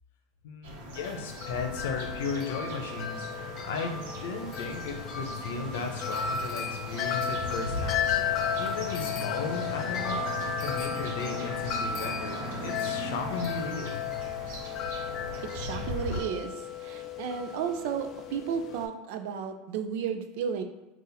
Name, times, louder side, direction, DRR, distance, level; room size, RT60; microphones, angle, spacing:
voice 1, 0.4-8.2 8.6-10.3 10.6-14.0, left 4 dB, 85° left, 5 dB, 0.7 m, -36 dB
sound 1, 0.6-16.2, left 1 dB, 75° right, 1.0 m, -38 dB
Wind chime, 1.0-18.9, left 7 dB, 30° left, 0.3 m, -34 dB
voice 2, 15.5-16.5 16.8-20.6, right 7 dB, 60° right, 7 dB, 0.5 m, -33 dB
4.0 x 2.5 x 4.0 m, 1.1 s
supercardioid pair, 170°, 0 cm